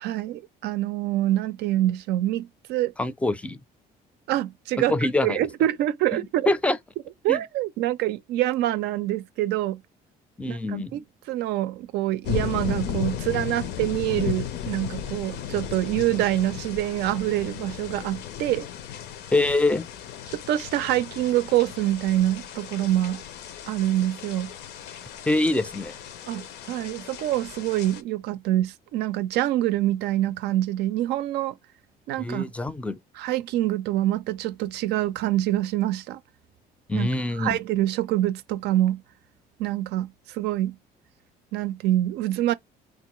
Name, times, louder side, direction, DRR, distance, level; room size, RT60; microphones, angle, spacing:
voice 1, 0.0-2.9 4.3-5.0 5.2-6.5 7.2-9.8 10.5-18.7 20.3-23.2 23.7-24.5 26.3-31.6 32.1-32.4 33.2-36.2 36.9-37.1 37.4-39.0 39.6-40.8 41.5-42.5, right 14 dB, 75° right, 0.4 m, -25 dB
voice 2, 3.0-3.6 4.9-5.4 6.1-6.8 7.3-7.4 10.4-10.9 19.3-19.8 25.3-26.0 32.2-33.0 36.9-37.6, left 2 dB, 5° left, 0.4 m, -24 dB
sound 1, 12.2-28.0, left 10 dB, 80° left, 0.6 m, -35 dB
3.7 x 2.5 x 3.0 m
cardioid pair, 110°, 17 cm